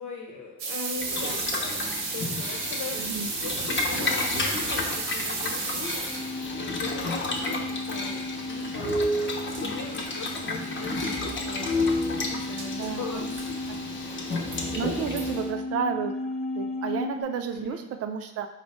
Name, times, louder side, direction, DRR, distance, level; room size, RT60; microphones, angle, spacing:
voice 1, 0.0-3.1 3.4-6.3 6.8-12.0 12.3-13.8 15.1-15.4 17.5-17.8, left 3 dB, 75° left, 1 dB, 1.0 m, -40 dB
sound 1, 0.6-6.5 9.3-9.4 9.5-9.6 10.2-10.3 10.5-10.6 11.0-11.2 12.6-12.9 13.4-13.5 14.1-14.6 15.2-15.3, right 4 dB, 80° right, 0.9 m, -33 dB
Boiling, 0.9-15.5, left 3 dB, 40° left, 0.8 m, -33 dB
voice 2, 2.9-3.3 12.7-13.2 13.7-13.8 14.7-16.1 16.6-18.5, right 7 dB, 50° right, 6 dB, 0.5 m, -31 dB
sound 2, 6.0-17.2, left 2 dB, ahead, 0.9 m, -32 dB
4.5 x 2.1 x 4.2 m, 0.82 s
cardioid pair, 90°, 30 cm